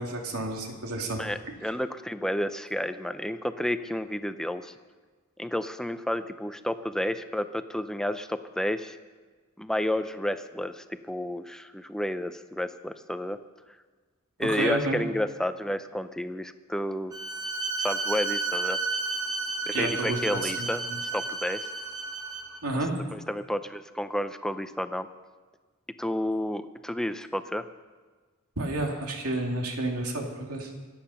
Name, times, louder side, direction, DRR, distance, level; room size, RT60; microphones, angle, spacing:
voice 1, 0.0-1.2 14.4-15.0 19.7-21.0 22.6-23.0 28.6-30.7, right 2 dB, 85° right, 1 dB, 2.7 m, -30 dB
voice 2, 1.2-4.7 5.4-9.0 9.6-13.4 14.4-17.1 17.8-18.8 19.7-20.8 21.1-21.7 23.1-25.1 26.0-27.6, left 1 dB, 5° left, 10 dB, 0.6 m, -31 dB
Bowed string instrument, 17.1-22.6, right 3 dB, 15° right, 1.4 m, -32 dB
25.0 x 8.9 x 5.7 m, 1.4 s
head